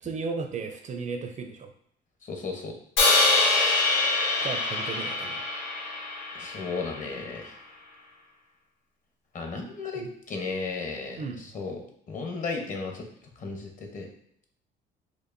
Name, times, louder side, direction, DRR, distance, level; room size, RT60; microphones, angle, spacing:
voice 1, 0.0-1.7 4.4-5.4 10.0-10.1 11.2-11.4, right 4 dB, 40° right, 5 dB, 0.4 m, -35 dB
voice 2, 2.3-2.7 6.4-7.5 9.3-13.0 13.4-14.1, left 4 dB, 40° left, 3 dB, 0.9 m, -34 dB
Crash cymbal, 3.0-7.2, left 3 dB, 75° left, 1.3 m, -25 dB
4.4 x 2.6 x 2.6 m, 0.70 s
cardioid pair, 100°, 20 cm